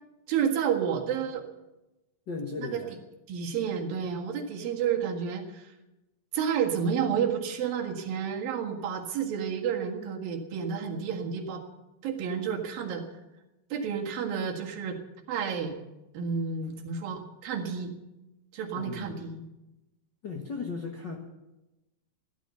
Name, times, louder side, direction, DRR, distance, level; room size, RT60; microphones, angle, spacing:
voice 1, 0.3-1.4 2.6-2.8 3.3-5.7 6.3-11.6 12.0-13.0 13.7-15.0 15.3-15.7 16.1-17.9 18.5-19.4, right 7 dB, 75° right, 1 dB, 3.5 m, -30 dB
voice 2, 2.3-2.9 18.7-19.1 20.2-21.2, left 4 dB, 60° left, 2 dB, 1.2 m, -36 dB
15.0 x 13.0 x 6.9 m, 0.99 s
omnidirectional pair, 4.2 m